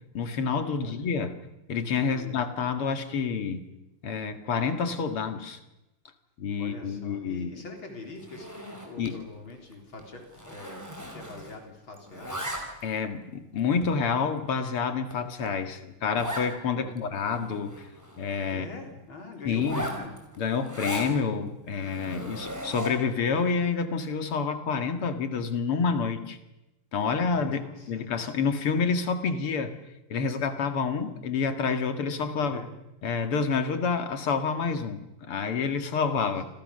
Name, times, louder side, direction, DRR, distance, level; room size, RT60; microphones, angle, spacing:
voice 1, 0.1-1.3 1.7-3.7 4.0-5.6 6.4-7.5 9.0-9.1 12.8-17.7 18.2-18.7 19.5-19.9 20.4-26.4 26.9-29.7 30.1-32.6 33.0-36.4, left 5 dB, 80° left, 8 dB, 2.9 m, -28 dB
voice 2, 2.1-2.4 6.6-12.5 16.7-17.0 18.5-20.1 22.2-22.5 27.3-28.1 32.4-32.7 36.1-36.3, left 3 dB, 65° left, 3 dB, 4.8 m, -43 dB
Zipper (clothing), 8.2-9.2 9.5-9.7 10.0-11.7 11.9-13.0 13.6-13.7 14.3-14.4 14.8-14.9 15.1-15.2 15.5-15.6 16.2-16.5 17.0-17.1 17.3-18.6 19.5-21.1 21.7-23.1, equal, 5° right, 5.0 m, -38 dB
29.5 x 26.0 x 6.7 m, 0.96 s
omnidirectional pair, 2.4 m